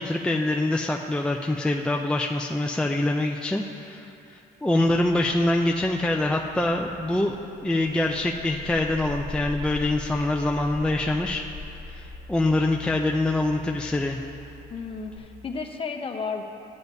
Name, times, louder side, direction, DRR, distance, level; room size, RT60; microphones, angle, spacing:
voice 1, 0.0-7.4 7.6-11.4 11.9-14.2, left 2 dB, 5° left, 1 dB, 0.4 m, -25 dB
sound 1, 4.9-15.2, left 3 dB, 55° left, 1.3 m, -42 dB
voice 2, 14.7-16.4, left 5 dB, 35° left, 3 dB, 0.9 m, -33 dB
14.0 x 9.5 x 2.7 m, 2.6 s
cardioid pair, 110°, 17 cm